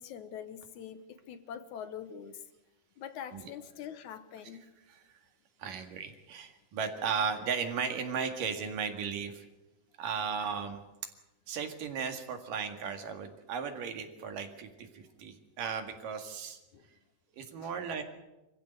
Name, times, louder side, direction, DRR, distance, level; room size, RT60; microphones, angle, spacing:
voice 1, 0.0-2.4 3.0-4.6 16.7-16.9 17.6-17.7, left 8 dB, 70° left, 11 dB, 2.3 m, -44 dB
voice 2, 5.6-9.5 10.0-10.8 11.5-16.6 17.3-18.0, right 6 dB, 80° right, 6 dB, 3.6 m, -36 dB
25.5 x 15.5 x 8.1 m, 1.0 s
omnidirectional pair, 3.8 m